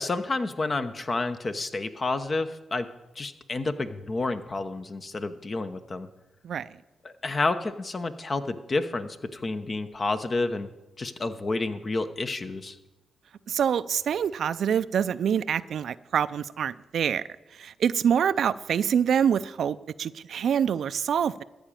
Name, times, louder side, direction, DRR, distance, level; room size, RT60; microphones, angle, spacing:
voice 1, 0.0-2.9 3.1-6.1 7.0-10.7 11.0-12.8, left 3 dB, 40° left, 10 dB, 0.9 m, -30 dB
voice 2, 13.5-17.2 17.5-21.4, right 8 dB, 70° right, 15 dB, 0.4 m, -26 dB
13.5 x 5.1 x 8.9 m, 1.0 s
cardioid pair, 60°, 0 cm